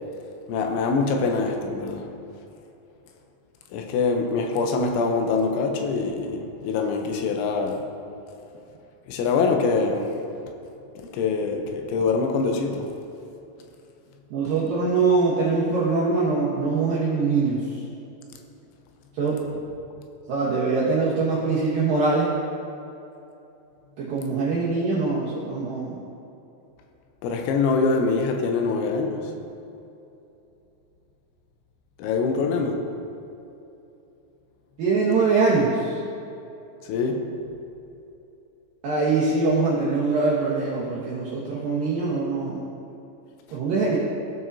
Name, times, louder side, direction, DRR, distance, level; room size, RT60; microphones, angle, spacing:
voice 1, 0.5-2.1 3.7-7.8 9.1-10.1 11.0-12.9 27.2-29.3 32.0-32.8 36.8-37.2, left 4 dB, 80° left, 3 dB, 3.0 m, -24 dB
voice 2, 14.3-17.8 19.2-19.5 20.3-22.3 24.0-26.0 34.8-36.0 38.8-42.6 43.5-44.0, right 4 dB, 75° right, -7 dB, 2.0 m, -23 dB
16.5 x 6.1 x 2.7 m, 2.8 s
omnidirectional pair, 5.4 m